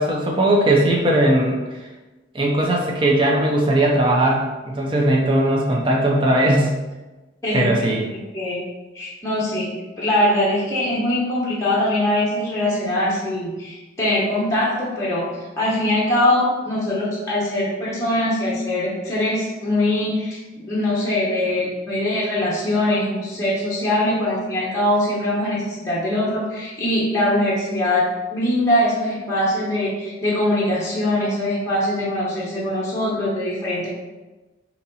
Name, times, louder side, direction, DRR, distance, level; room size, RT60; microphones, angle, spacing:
voice 1, 0.0-1.6 2.3-6.7 7.5-8.0, right 1 dB, 25° right, -2 dB, 0.5 m, -18 dB
voice 2, 7.4-8.6 8.9-9.7 10.0-15.3 15.6-33.9, left 1 dB, 15° left, -8 dB, 0.9 m, -22 dB
4.1 x 2.9 x 4.0 m, 1.2 s
head